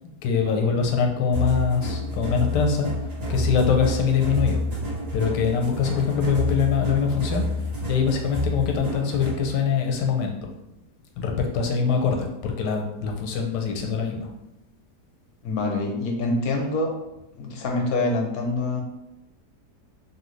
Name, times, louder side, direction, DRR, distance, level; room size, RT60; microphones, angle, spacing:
voice 1, 0.2-2.9 3.3-4.6 5.1-7.5 7.9-10.3 11.2-14.3, left 6 dB, 90° left, 2 dB, 1.2 m, -23 dB
sound 1, 1.3-9.5, left 1 dB, 50° right, 1.5 m, -29 dB
voice 2, 15.4-16.9 17.4-18.8, left 2 dB, 70° left, 1 dB, 0.9 m, -25 dB
3.1 x 2.5 x 3.0 m, 0.92 s
omnidirectional pair, 1.8 m